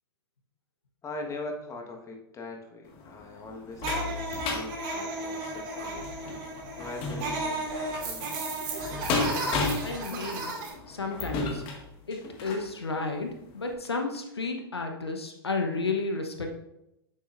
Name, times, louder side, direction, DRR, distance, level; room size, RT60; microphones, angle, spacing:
voice 1, 1.0-6.1 6.8-8.4, left 2 dB, 25° left, 2 dB, 1.4 m, -41 dB
sound 1, 2.9-12.7 13.3-13.4 13.7-13.8, left 4 dB, 45° left, 1.7 m, -34 dB
sound 2, 3.8-10.7, right 2 dB, 50° right, 2.7 m, -34 dB
voice 2, 9.8-10.6 10.9-11.6 12.1-16.6, left 3 dB, 90° left, 4 dB, 1.0 m, -32 dB
9.3 x 7.2 x 2.5 m, 0.86 s
figure-of-eight pair, 95°, 13 cm